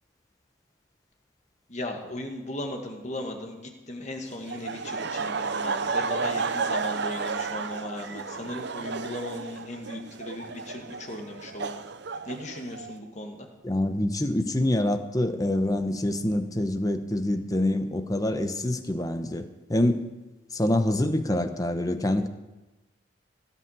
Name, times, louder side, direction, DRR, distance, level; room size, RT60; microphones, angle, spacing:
voice 1, 1.7-11.8 12.3-13.5, left 1 dB, 35° left, 2 dB, 1.9 m, -37 dB
Laughter, 4.5-13.0, right 4 dB, 55° right, 0.7 m, -32 dB
voice 2, 13.6-19.4 19.7-20.0 20.5-22.3, left 1 dB, 15° left, 8 dB, 0.8 m, -26 dB
18.0 x 6.1 x 9.5 m, 1.1 s
head